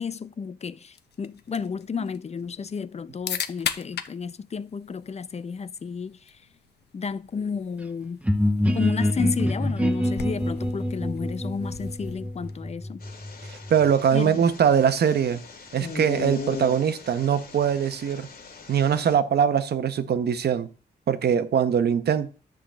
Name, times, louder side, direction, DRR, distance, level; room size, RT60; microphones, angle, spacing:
voice 1, 0.0-6.4 6.9-8.2 8.7-13.0 14.1-14.4, left 6 dB, 40° left, 0.5 m, -32 dB
sound 1, 0.9-12.8, left 8 dB, 80° left, 0.8 m, -40 dB
sound 2, 8.2-13.9, left 1 dB, 10° right, 1.1 m, -26 dB
sound 3, 13.0-19.1, left 5 dB, 60° left, 2.2 m, -39 dB
voice 2, 13.4-15.4 15.7-18.3 18.7-20.7 21.1-22.3, right 8 dB, 70° right, 0.9 m, -22 dB
10.0 x 3.8 x 7.4 m
cardioid pair, 85°, 17 cm